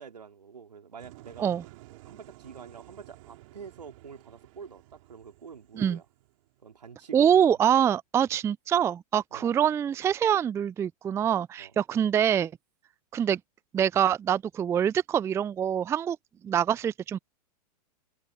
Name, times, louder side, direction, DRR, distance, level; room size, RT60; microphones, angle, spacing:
voice 1, 0.0-1.5 2.1-6.0 6.6-7.3 9.3-9.6 11.6-11.7, right 6 dB, 80° right, 3.9 m, -46 dB
sound 1, 1.0-6.9, right 19 dB, 55° right, 4.3 m, -53 dB
voice 2, 7.1-12.5 13.1-13.4 13.7-16.2 16.4-17.2, right 9 dB, 15° right, 0.4 m, -25 dB
open air
figure-of-eight pair, 105°, 21 cm